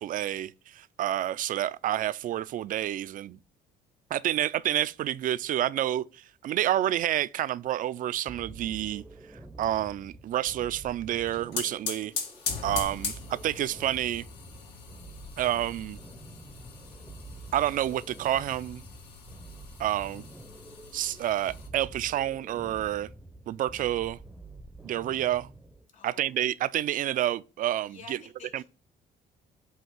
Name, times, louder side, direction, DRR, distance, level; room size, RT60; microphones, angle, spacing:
voice 1, 0.0-3.4 4.1-9.0 9.6-12.1 12.6-14.3 15.4-16.0 17.5-18.8 19.8-20.2 20.9-23.1 23.5-24.2 24.8-25.5 26.0-28.2 28.5-28.6, right 12 dB, 55° right, 0.4 m, -29 dB
sound 1, 8.3-25.9, right 3 dB, 5° right, 0.7 m, -47 dB
sound 2, 11.1-21.7, left 5 dB, 80° left, 1.9 m, -40 dB
voice 2, 25.9-26.5 27.9-28.6, left 5 dB, 50° left, 2.7 m, -50 dB
7.9 x 2.8 x 5.9 m
cardioid pair, 110°, 17 cm